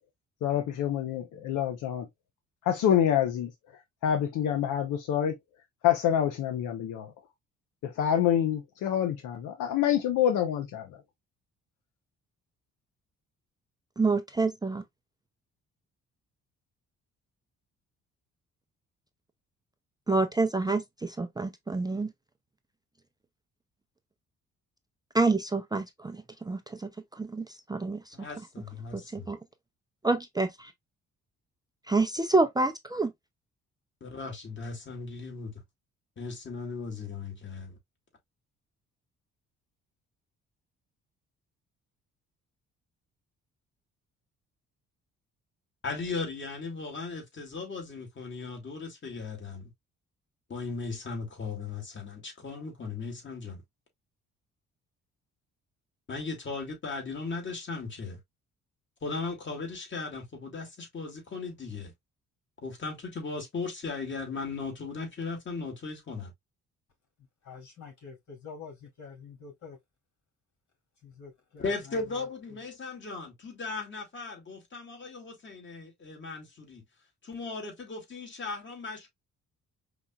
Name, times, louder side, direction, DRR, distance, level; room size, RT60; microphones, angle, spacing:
voice 1, 0.4-2.1 2.6-3.5 4.0-5.3 5.8-7.1 7.8-10.9, left 10 dB, 85° left, 0.8 m, -26 dB
voice 2, 14.0-14.8 20.1-22.1 25.1-26.2 26.5-26.6 27.2-27.4 27.7-28.0 29.1-29.4 30.0-30.7 31.9-33.1, right 3 dB, 15° right, 0.5 m, -27 dB
voice 3, 28.1-29.3 34.0-35.6 36.2-37.8 45.8-49.7 50.5-53.6 56.1-58.2 59.0-61.9 62.6-66.3 71.6-76.8 77.2-79.1, left 4 dB, 40° left, 2.1 m, -37 dB
voice 4, 67.5-69.8 71.0-71.6, left 5 dB, 70° left, 3.1 m, -46 dB
5.0 x 3.0 x 2.3 m
cardioid pair, 90°, 30 cm